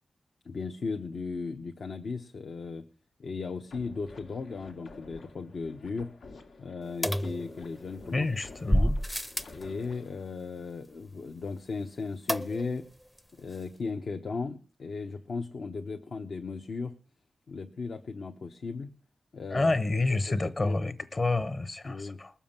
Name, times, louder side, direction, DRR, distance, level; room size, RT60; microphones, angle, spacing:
voice 1, 0.4-2.8 3.2-6.1 6.6-8.3 8.7-8.9 9.5-12.8 13.4-16.9 17.5-18.9 19.3-19.7 20.3-21.2 21.8-22.2, left 4 dB, 60° left, 0.9 m, -36 dB
sound 1, 3.7-10.3, left 3 dB, 85° left, 1.9 m, -51 dB
sound 2, 7.0-8.0 8.7-9.6 12.3-12.9 13.2-13.3 13.5-13.6, equal, 10° left, 0.6 m, -29 dB
voice 2, 8.1-9.0 19.5-22.3, left 2 dB, 30° left, 1.0 m, -28 dB
20.0 x 7.2 x 7.3 m
wide cardioid pair, 170°, 0 cm